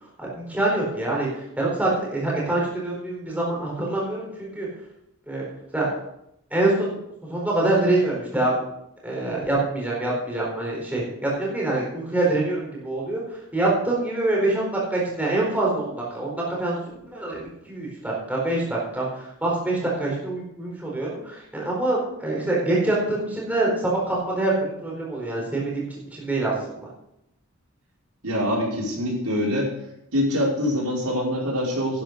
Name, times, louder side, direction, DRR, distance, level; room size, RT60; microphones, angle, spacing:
voice 1, 0.2-4.7 5.3-5.4 5.7-5.9 6.5-7.0 7.2-8.6 9.0-13.2 13.5-26.9, right 2 dB, 5° right, -4 dB, 4.4 m, -25 dB
voice 2, 28.2-29.7 30.1-32.0, left 1 dB, 90° right, -3 dB, 5.2 m, -24 dB
11.5 x 10.5 x 5.3 m, 0.80 s
head